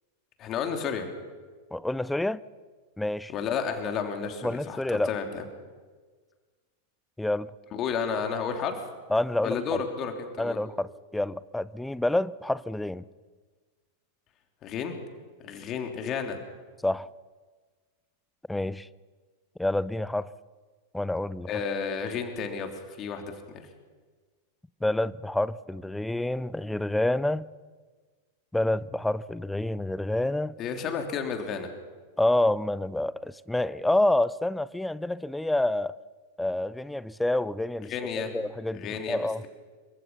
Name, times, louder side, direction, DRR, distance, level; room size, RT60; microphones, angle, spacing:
voice 1, 0.4-1.1 3.3-5.4 7.7-8.8 9.4-10.6 14.6-15.0 15.4-16.4 21.5-23.6 30.6-31.7 37.9-38.3 38.7-39.5, left 6 dB, 30° left, 4 dB, 3.2 m, -32 dB
voice 2, 1.7-2.4 3.0-3.3 4.4-5.1 7.2-7.5 9.1-9.6 10.4-13.0 16.8-17.1 18.5-18.9 19.6-20.3 20.9-21.5 24.8-27.5 28.5-30.5 32.2-35.9 36.4-37.9 38.3-39.4, left 1 dB, 5° left, 20 dB, 0.6 m, -28 dB
27.5 x 24.5 x 5.6 m, 1.4 s
figure-of-eight pair, 90°, 0 cm